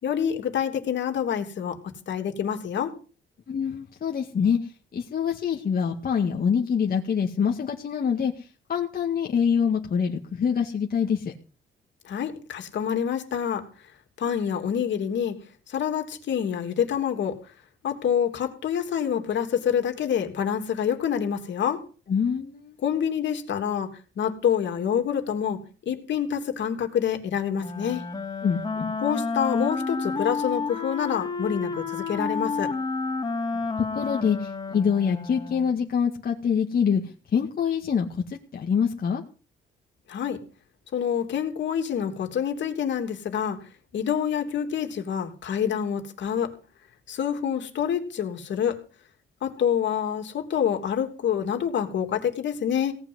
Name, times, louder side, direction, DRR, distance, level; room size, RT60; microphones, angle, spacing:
voice 1, 0.0-1.8 2.1-2.9 12.0-13.6 14.2-15.3 15.7-17.4 17.8-21.8 22.8-23.9 24.2-28.1 29.0-32.7 40.1-40.4 40.9-43.6 43.9-46.5 47.1-48.8 49.4-52.9, left 8 dB, 65° left, 5 dB, 3.0 m, -27 dB
voice 2, 3.5-4.6 4.9-8.3 8.7-11.3 22.1-22.8 28.4-28.9 33.9-39.2, left 7 dB, 50° left, 1 dB, 2.0 m, -25 dB
Wind instrument woodwind instrument, 27.6-35.8, left 4 dB, 20° left, 4.2 m, -30 dB
17.5 x 6.0 x 9.5 m, 0.37 s
cardioid pair, 90°, 20 cm